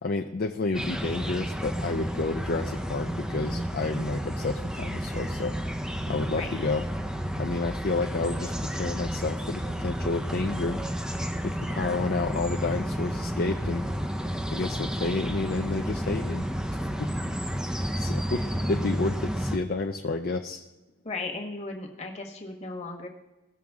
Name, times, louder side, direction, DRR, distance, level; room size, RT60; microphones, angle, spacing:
voice 1, 0.0-5.5 6.1-6.9 7.4-10.8 11.4-13.9 14.5-16.4 17.0-17.1 17.7-20.7, left 3 dB, 45° left, 4 dB, 0.5 m, -30 dB
sound 1, 0.7-19.6, equal, 5° right, 0.5 m, -31 dB
voice 2, 21.0-23.1, left 3 dB, 30° left, 1 dB, 1.4 m, -36 dB
17.5 x 6.1 x 3.6 m, 1.0 s
head